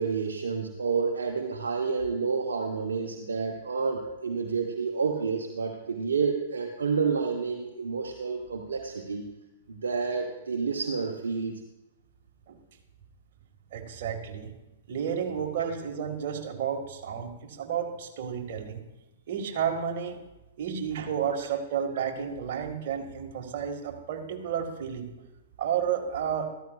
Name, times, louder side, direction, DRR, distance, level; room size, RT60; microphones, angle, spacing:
voice 1, 0.0-9.3 9.7-11.5, right 5 dB, 80° right, 1 dB, 1.0 m, -29 dB
voice 2, 13.7-14.5 14.9-18.8 19.3-20.2 20.6-25.1 25.6-26.5, right 8 dB, 55° right, 2 dB, 1.8 m, -31 dB
14.0 x 13.0 x 2.4 m, 0.98 s
hypercardioid pair, 115°, 0 cm